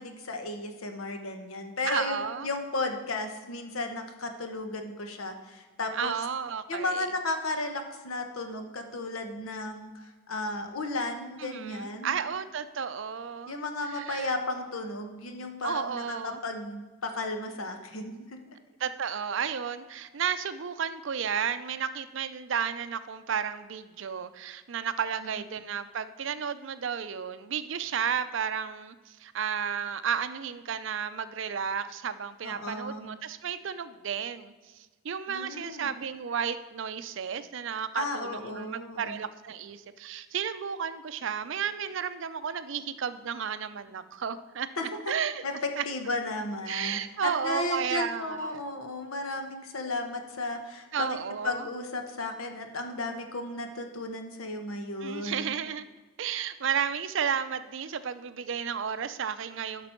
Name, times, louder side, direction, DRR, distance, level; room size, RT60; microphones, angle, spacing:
voice 1, 0.0-6.2 6.7-12.2 13.5-18.4 25.2-25.3 32.4-33.1 35.3-35.9 37.9-39.2 44.8-44.9 45.4-51.2 51.4-55.5, left 2 dB, 80° left, 6 dB, 1.1 m, -34 dB
voice 2, 1.9-2.5 5.9-7.1 11.4-14.3 15.6-16.4 18.8-44.7 45.1-45.4 45.8-45.9 46.7-48.6 50.9-51.7 55.0-55.9 56.2-59.9, right 7 dB, 60° right, 12 dB, 0.5 m, -33 dB
11.0 x 6.0 x 4.4 m, 1.3 s
head